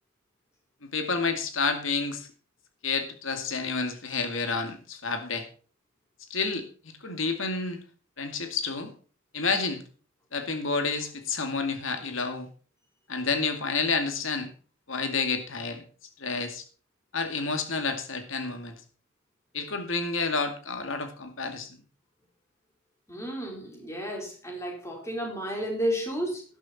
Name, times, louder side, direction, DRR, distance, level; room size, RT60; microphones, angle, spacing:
voice 1, 0.8-2.3 2.8-5.4 6.3-7.8 8.2-8.9 9.3-9.8 10.3-12.5 13.1-14.5 14.9-15.8 16.2-16.6 17.1-18.7 19.5-21.7, left 4 dB, 75° left, 7 dB, 2.4 m, -29 dB
voice 2, 23.1-26.4, equal, 15° left, 0 dB, 4.3 m, -32 dB
12.5 x 11.5 x 4.3 m, 0.39 s
head